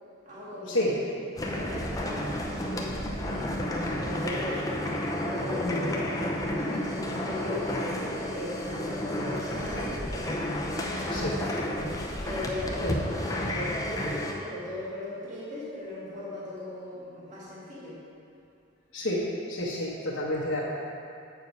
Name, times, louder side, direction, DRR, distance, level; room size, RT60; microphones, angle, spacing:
voice 1, 0.3-1.1 1.4-4.9 5.3-18.0, left 1 dB, 35° right, -10 dB, 1.8 m, -38 dB
sound 1, 1.4-14.3, left 1 dB, 15° left, 0.6 m, -31 dB
voice 2, 19.5-20.6, left 1 dB, 80° left, -6 dB, 1.0 m, -29 dB
8.0 x 4.7 x 5.3 m, 2.5 s
head